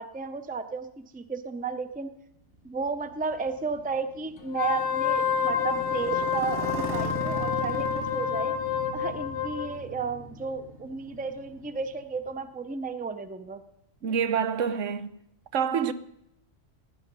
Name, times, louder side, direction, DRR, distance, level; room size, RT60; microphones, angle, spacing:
voice 1, 0.0-2.1 2.6-8.5 8.9-13.6, right 5 dB, 10° right, 0.5 m, -33 dB
Motorcycle, 2.5-12.5, right 1 dB, 65° right, 2.2 m, -38 dB
Wind instrument woodwind instrument, 4.5-9.7, left 8 dB, 70° left, 1.4 m, -28 dB
voice 2, 14.0-15.1 15.5-15.9, right 7 dB, 80° right, 1.2 m, -26 dB
17.0 x 10.5 x 5.4 m
omnidirectional pair, 1.3 m